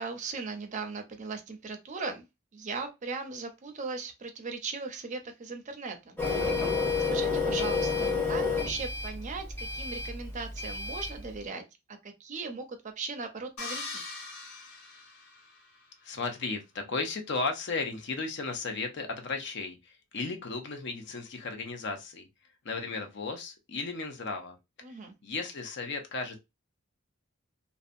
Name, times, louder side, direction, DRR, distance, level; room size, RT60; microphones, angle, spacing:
voice 1, 0.0-2.3 2.5-6.2 7.1-11.6 11.9-14.0 24.8-25.1, right 4 dB, 35° right, 0.5 m, -38 dB
Printer, 6.2-11.2, left 4 dB, 10° left, 0.8 m, -30 dB
sound 1, 13.6-15.8, left 3 dB, 85° left, 1.3 m, -41 dB
voice 2, 16.0-22.3 22.6-24.6 25.2-26.4, left 3 dB, 55° left, 0.6 m, -35 dB
2.6 x 2.1 x 2.5 m
head